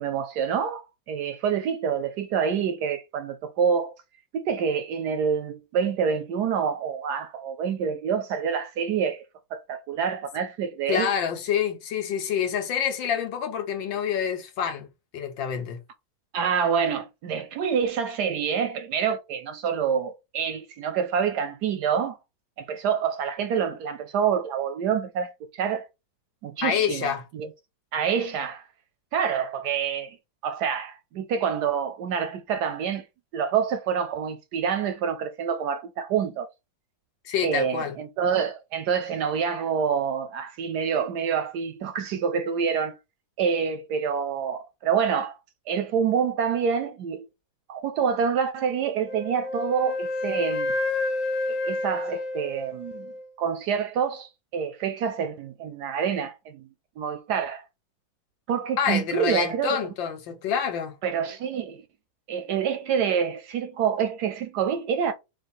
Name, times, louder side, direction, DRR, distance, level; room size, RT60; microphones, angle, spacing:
voice 1, 0.0-3.9 4.3-9.2 9.5-11.1 16.3-22.2 22.6-25.8 26.4-27.5 27.9-28.7 29.1-30.2 30.4-33.1 33.3-36.5 37.4-43.0 43.4-45.4 45.7-47.3 47.7-50.7 51.5-53.1 53.4-56.7 57.0-57.6 58.5-59.8 61.0-61.8 62.3-65.1, right 7 dB, 75° right, 1.0 m, -27 dB
voice 2, 10.9-14.9 15.1-15.8 26.6-27.2 37.3-38.0 58.8-61.0, left 8 dB, 80° left, 1.6 m, -27 dB
Wind instrument woodwind instrument, 49.0-53.3, left 2 dB, 50° left, 1.1 m, -29 dB
4.5 x 2.4 x 4.2 m
omnidirectional pair, 2.1 m